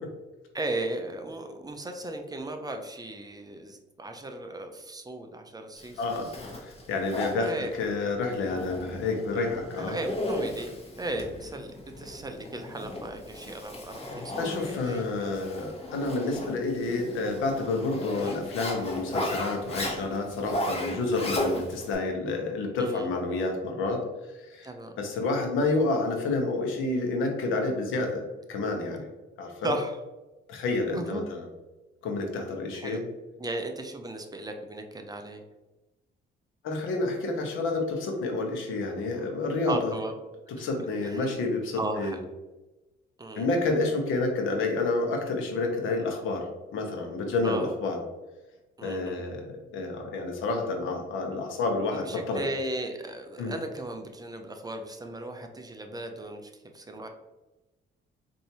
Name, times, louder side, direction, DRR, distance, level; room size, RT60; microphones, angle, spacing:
voice 1, 0.5-6.0 7.4-7.7 9.8-10.7 11.0-15.3 18.2-18.4 21.1-21.2 22.8-23.1 24.6-25.0 29.6-30.0 30.9-31.3 32.7-33.0 33.4-35.4 39.1-39.3 39.7-40.1 40.6-40.7 41.0-41.2 41.8-42.3 43.2-43.5 47.4-47.7 48.8-49.2 51.9-57.1, right 1 dB, 20° right, 5 dB, 0.5 m, -36 dB
Zipper (clothing), 5.8-21.9, left 1 dB, 30° left, 1.0 m, -36 dB
voice 2, 6.0-6.3 6.6-7.5 7.8-10.0 14.4-24.7 25.0-29.1 29.4-29.7 30.5-31.4 32.0-33.0 36.6-39.9 40.6-42.1 43.4-46.5 46.7-48.0 48.8-49.5 49.7-52.4 53.4-53.5, left 3 dB, 85° left, 2 dB, 0.9 m, -29 dB
4.5 x 2.7 x 2.8 m, 1.1 s
cardioid pair, 90°, 20 cm